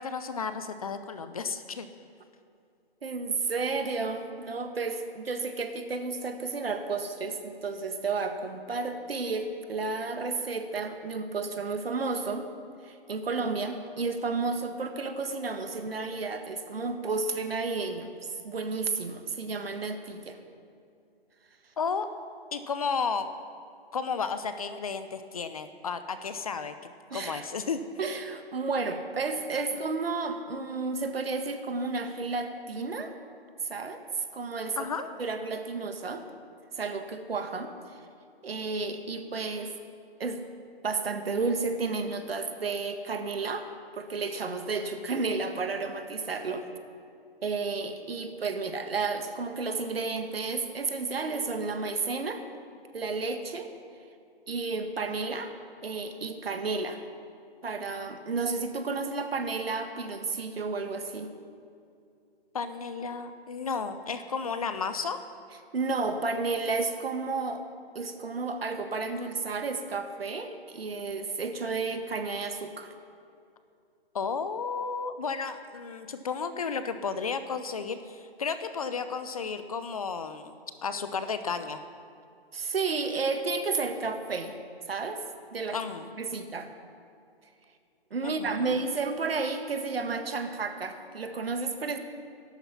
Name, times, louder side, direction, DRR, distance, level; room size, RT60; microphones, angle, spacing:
voice 1, 0.0-1.9 21.8-22.1 22.5-23.3 23.9-26.7 27.1-27.8 34.8-35.1 62.5-65.2 74.1-80.6 80.8-81.8 85.7-86.1 88.2-88.7, left 5 dB, 35° left, 10 dB, 0.7 m, -33 dB
voice 2, 3.0-12.5 12.8-18.1 18.4-20.4 27.1-27.5 28.0-33.1 33.6-34.9 35.2-36.3 36.8-38.0 38.4-39.8 40.2-40.4 40.8-43.7 43.9-46.7 47.4-52.4 52.9-53.7 54.5-55.5 55.8-57.0 57.6-61.3 65.7-67.7 67.9-72.9 82.5-84.5 84.9-85.2 85.5-85.8 86.2-86.7 88.1-92.0, right 4 dB, 65° right, 7 dB, 1.6 m, -32 dB
13.5 x 12.0 x 5.7 m, 2.5 s
hypercardioid pair, 155°, 31 cm